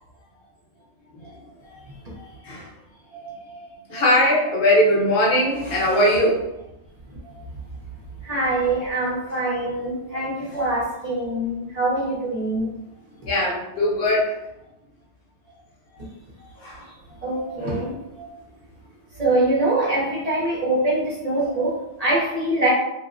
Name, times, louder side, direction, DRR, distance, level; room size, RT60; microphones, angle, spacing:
voice 1, 2.2-2.7 3.2-6.5 10.5-10.8 13.3-14.4 16.6-16.8 17.4-17.9 18.2-18.4, left 1 dB, 60° left, -3 dB, 0.9 m, -21 dB
voice 2, 8.2-12.7 17.2-17.9 19.2-22.7, right 2 dB, 45° right, -6 dB, 0.6 m, -24 dB
3.0 x 2.3 x 2.4 m, 0.88 s
omnidirectional pair, 1.2 m